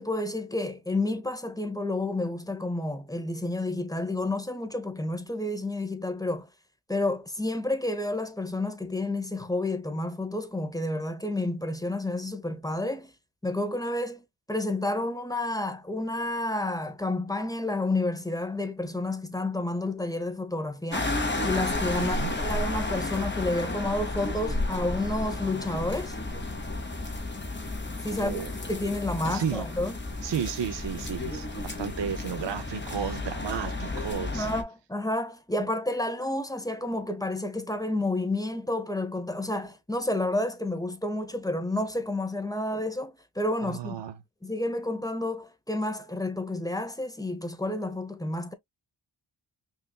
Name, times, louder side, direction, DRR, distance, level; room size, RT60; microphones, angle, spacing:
voice 1, 0.0-6.5 6.9-13.1 13.4-21.1 21.4-26.2 28.0-28.4 28.7-30.0 34.3-44.0 44.4-48.5, left 2 dB, 10° left, 0.8 m, -30 dB
sound 1, 20.9-34.6, left 2 dB, 25° left, 1.1 m, -32 dB
voice 2, 22.0-22.3 28.2-28.5 29.3-29.7 30.2-34.5 43.6-44.1, right 8 dB, 60° right, 0.7 m, -33 dB
5.7 x 2.6 x 2.3 m
wide cardioid pair, 105°, 47 cm